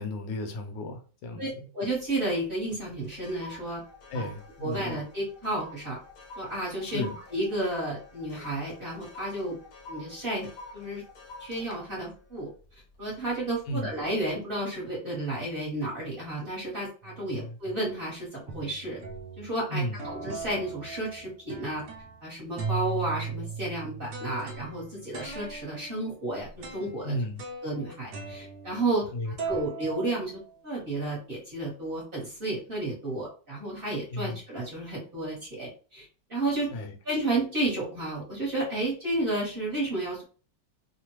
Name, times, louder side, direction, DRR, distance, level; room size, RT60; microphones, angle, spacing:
voice 1, 0.0-1.6 4.1-4.9 6.8-7.2 13.7-13.9 17.3-17.6 19.7-20.0 27.0-27.4 29.1-29.3 34.1-34.4 36.7-36.9, left 1 dB, 80° left, 4 dB, 1.3 m, -34 dB
voice 2, 1.7-3.8 4.1-4.3 4.6-6.0 6.4-9.6 9.9-10.5 10.7-11.0 11.4-12.5 13.0-19.0 19.4-21.8 22.2-27.2 27.6-36.7 37.0-40.2, right 1 dB, 35° right, -5 dB, 1.0 m, -32 dB
sound 1, 2.1-2.4 2.7-13.3 13.7-14.0, left 2 dB, 60° left, 1.0 m, -48 dB
sound 2, 17.0-17.4 18.0-18.1 18.5-19.6 20.0-22.2 22.6-29.1 29.4-30.8, right 5 dB, 85° right, 0.6 m, -38 dB
3.2 x 2.1 x 2.9 m, 0.38 s
omnidirectional pair, 2.0 m